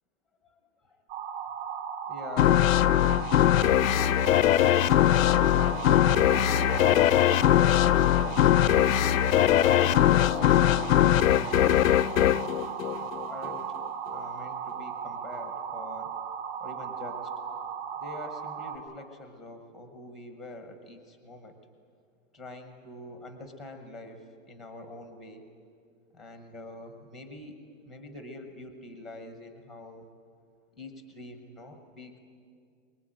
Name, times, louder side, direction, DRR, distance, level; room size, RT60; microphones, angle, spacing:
voice 1, 0.5-1.0 2.1-4.4 5.4-8.8 9.6-12.7 13.2-13.6 14.1-16.1 16.6-17.3 18.0-21.6 22.3-25.4 26.1-27.6 27.9-30.1 30.7-32.2, left 2 dB, ahead, 6 dB, 0.8 m, -44 dB
sound 1, 1.1-18.8, right 7 dB, 55° right, 3.6 m, -36 dB
sound 2, 2.4-13.6, left 13 dB, 75° left, 0.6 m, -21 dB
23.0 x 21.0 x 8.9 m, 2.2 s
hypercardioid pair, 175°, 41 cm